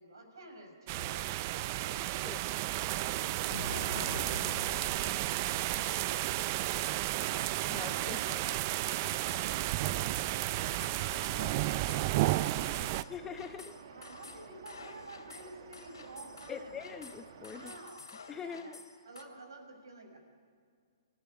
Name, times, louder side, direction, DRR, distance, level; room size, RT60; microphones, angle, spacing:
voice 1, 0.0-7.6 13.5-16.9 17.5-20.2, right 2 dB, 75° right, 5 dB, 5.9 m, -52 dB
sound 1, 0.9-13.0, right 16 dB, 40° right, 0.5 m, -32 dB
sound 2, 3.5-19.2, left 3 dB, 80° left, 3.2 m, -49 dB
sound 3, 7.4-17.8, right 6 dB, 60° right, 1.9 m, -52 dB
voice 2, 7.7-8.6 13.1-13.7 16.5-17.7 18.3-18.8, left 7 dB, 15° left, 9 dB, 1.1 m, -43 dB
27.0 x 15.0 x 9.5 m, 2.2 s
hypercardioid pair, 130°, 2 cm